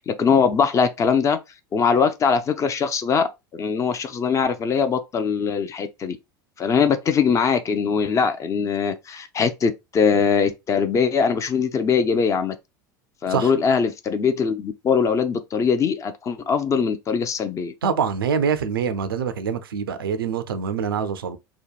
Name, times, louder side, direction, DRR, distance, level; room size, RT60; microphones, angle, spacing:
voice 1, 0.1-1.4 1.7-6.2 6.6-12.6 13.2-17.7, left 6 dB, 25° left, 0.4 m, -21 dB
voice 2, 17.8-21.4, right 6 dB, 85° right, 0.4 m, -25 dB
2.8 x 2.1 x 2.3 m
hypercardioid pair, 85°, 12 cm